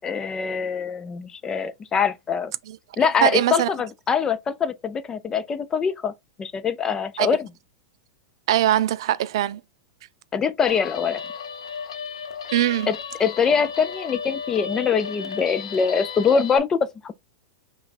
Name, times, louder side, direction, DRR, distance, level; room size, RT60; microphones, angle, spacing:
voice 1, 0.0-2.5 3.0-6.1 6.4-7.5 10.3-11.2 12.9-17.1, left 6 dB, 20° left, 0.4 m, -23 dB
voice 2, 3.2-3.7 7.2-7.3 8.5-9.6 12.5-12.9, right 13 dB, 70° right, 0.5 m, -21 dB
Guitar, 10.7-16.6, left 6 dB, 90° left, 0.9 m, -34 dB
5.6 x 2.4 x 4.0 m
hypercardioid pair, 130°, 3 cm